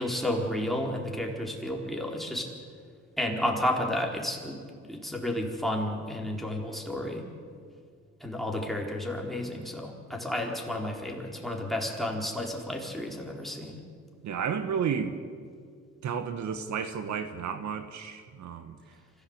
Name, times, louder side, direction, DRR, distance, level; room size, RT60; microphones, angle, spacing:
voice 1, 0.0-2.5 3.2-4.6 4.8-7.2 8.2-13.8, left 1 dB, ahead, -1 dB, 4.3 m, -31 dB
voice 2, 14.2-15.1 16.0-18.8, right 7 dB, 70° right, 9 dB, 1.4 m, -32 dB
24.5 x 16.0 x 8.2 m, 2.1 s
cardioid pair, 90°, 30 cm